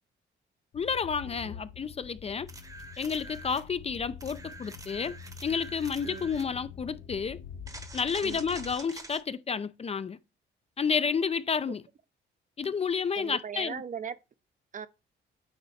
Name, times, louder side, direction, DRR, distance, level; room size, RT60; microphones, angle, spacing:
sound 1, 0.7-8.8, left 7 dB, 65° left, 0.8 m, -46 dB
voice 1, 0.7-2.5 3.0-5.1 5.4-7.4 7.9-10.2 10.8-11.8 12.6-13.8, left 6 dB, 30° left, 0.5 m, -30 dB
voice 2, 1.2-1.6 6.0-6.4 8.2-8.4 13.1-14.2 14.7-14.9, right 7 dB, 40° right, 0.6 m, -39 dB
sound 2, 2.5-3.7 4.2-6.5 7.7-9.2 12.6-12.7, right 2 dB, 15° right, 1.0 m, -46 dB
8.8 x 3.1 x 4.1 m
cardioid pair, 90°, 20 cm